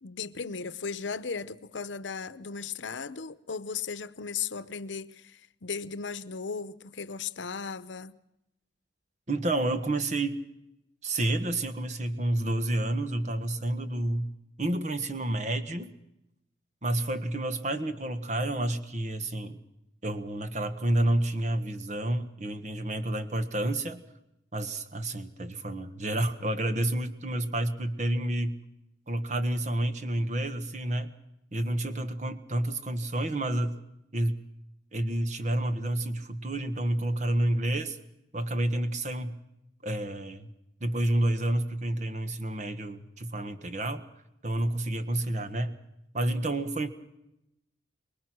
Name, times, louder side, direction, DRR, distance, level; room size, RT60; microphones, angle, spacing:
voice 1, 0.0-8.2, left 5 dB, 80° left, 0.8 m, -36 dB
voice 2, 9.3-10.4 11.0-15.9 16.8-19.6 20.0-24.0 24.5-28.6 29.1-31.1 31.5-33.8 34.1-34.4 34.9-38.0 38.3-39.4 39.8-40.5 40.8-44.1 44.4-45.8 46.1-46.9, right 1 dB, 40° right, 1.5 m, -29 dB
24.5 x 21.0 x 6.2 m
head